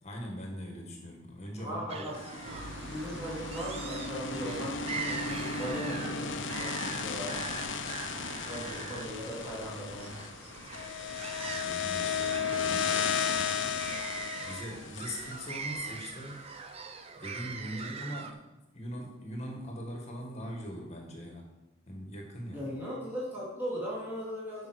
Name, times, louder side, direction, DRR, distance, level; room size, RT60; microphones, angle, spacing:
voice 1, 0.0-2.2 8.1-8.7 11.4-13.5 14.4-16.4 17.2-21.5 21.9-22.7, equal, 30° left, 1 dB, 1.7 m, -41 dB
voice 2, 1.6-2.4 2.9-7.4 8.4-10.2 22.5-24.7, equal, 10° right, -8 dB, 2.9 m, -38 dB
sound 1, 1.9-18.3, right 5 dB, 30° right, 0.5 m, -43 dB
sound 2, 2.1-16.3, left 6 dB, 60° left, 0.7 m, -35 dB
sound 3, 2.4-14.0, right 1 dB, 55° right, 1.4 m, -48 dB
8.8 x 5.4 x 6.4 m, 1.0 s
head